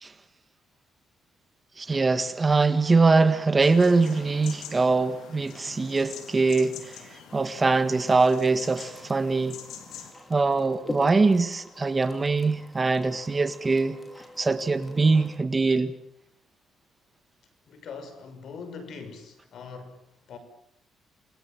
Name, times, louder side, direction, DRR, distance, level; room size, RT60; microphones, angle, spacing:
voice 1, 1.8-9.6 10.3-14.0 14.4-16.0, right 3 dB, 25° right, 1.8 m, -23 dB
sound 1, 3.6-10.1, left 8 dB, 85° left, 3.9 m, -45 dB
sound 2, 7.3-15.4, left 1 dB, 20° left, 5.2 m, -44 dB
voice 2, 17.7-20.4, left 5 dB, 65° left, 6.1 m, -42 dB
28.5 x 21.5 x 7.7 m
cardioid pair, 90°, 0 cm